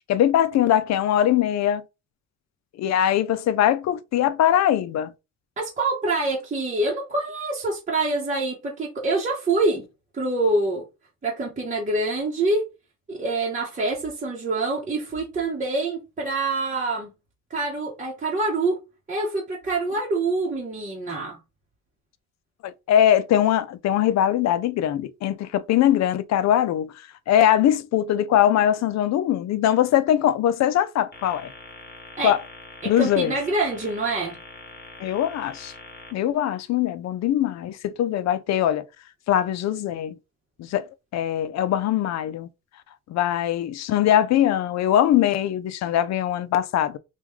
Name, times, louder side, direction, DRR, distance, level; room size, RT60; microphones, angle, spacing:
voice 1, 0.1-1.8 2.8-5.1 22.6-26.9 27.3-31.5 32.2-32.4 32.8-33.3 35.0-35.7 36.1-38.9 39.3-40.2 40.6-42.5 43.1-47.0, left 11 dB, 60° left, 0.5 m, -21 dB
voice 2, 5.6-9.8 10.1-10.8 11.2-12.6 13.1-17.1 17.5-18.8 19.1-21.4 32.2-32.4 32.8-34.4, right 2 dB, 25° right, 0.9 m, -25 dB
sound 1, 31.1-36.1, left 3 dB, 35° left, 1.2 m, -43 dB
3.1 x 2.3 x 3.5 m
cardioid pair, 90°, 30 cm